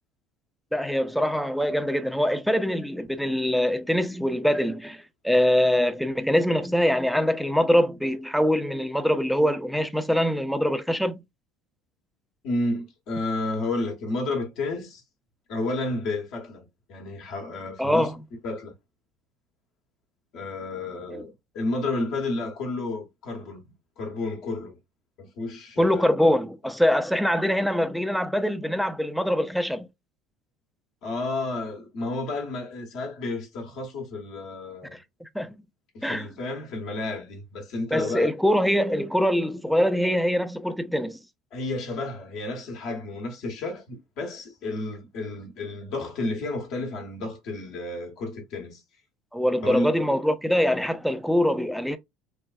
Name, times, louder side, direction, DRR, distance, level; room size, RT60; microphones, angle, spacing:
voice 1, 0.7-11.2 17.8-18.1 25.8-29.9 34.9-35.5 36.0-36.3 37.9-41.2 49.3-52.0, equal, ahead, 0.4 m, -23 dB
voice 2, 12.4-15.0 15.5-18.1 18.4-18.7 20.3-23.7 24.0-24.8 25.2-26.0 31.0-35.0 35.9-38.3 41.5-48.8 49.6-49.9, left 2 dB, 55° left, 1.0 m, -31 dB
3.3 x 2.3 x 2.3 m
figure-of-eight pair, 65°, 0 cm